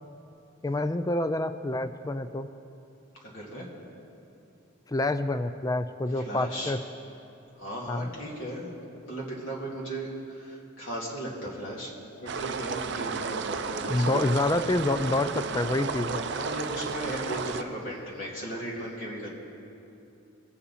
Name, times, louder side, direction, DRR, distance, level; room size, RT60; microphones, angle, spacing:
voice 1, 0.6-2.5 4.9-6.8 7.9-8.1 13.9-16.2, left 2 dB, 15° left, 11 dB, 0.3 m, -27 dB
voice 2, 3.2-3.7 6.1-6.8 7.5-8.7 9.1-12.0 12.2-14.3 16.3-19.3, right 1 dB, 60° left, -4 dB, 2.2 m, -36 dB
sound 1, 12.3-17.6, right 5 dB, 55° right, 0.5 m, -33 dB
22.0 x 8.5 x 4.1 m, 2.8 s
head